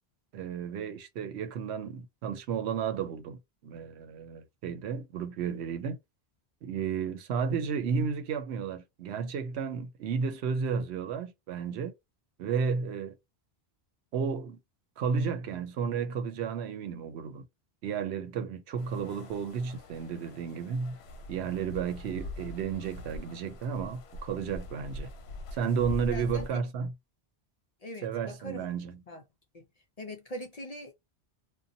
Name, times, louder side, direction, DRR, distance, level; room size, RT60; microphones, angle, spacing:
voice 1, 0.3-6.0 6.6-11.9 12.4-13.2 14.1-14.6 15.0-17.4 17.8-21.0 21.3-25.1 25.5-26.9 28.0-29.0, right 6 dB, 85° right, 0.9 m, -32 dB
sound 1, 18.8-26.5, left 2 dB, 80° left, 0.8 m, -43 dB
voice 2, 26.1-26.7 27.8-28.8 29.1-29.2 29.5-29.7 30.0-30.9, equal, 50° left, 0.5 m, -41 dB
2.6 x 2.2 x 2.6 m
omnidirectional pair, 1.1 m